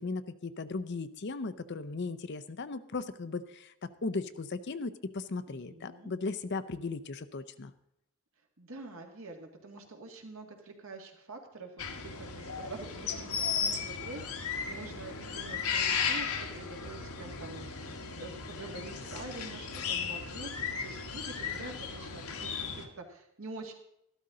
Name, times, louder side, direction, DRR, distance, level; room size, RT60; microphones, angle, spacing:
voice 1, 0.0-7.7, left 3 dB, 50° left, 13 dB, 0.6 m, -37 dB
voice 2, 5.5-6.1 8.6-23.7, right 2 dB, 70° right, 2 dB, 2.1 m, -46 dB
sound 1, 11.8-22.9, left 6 dB, 80° left, 1.4 m, -35 dB
13.5 x 12.5 x 3.8 m, 0.79 s
head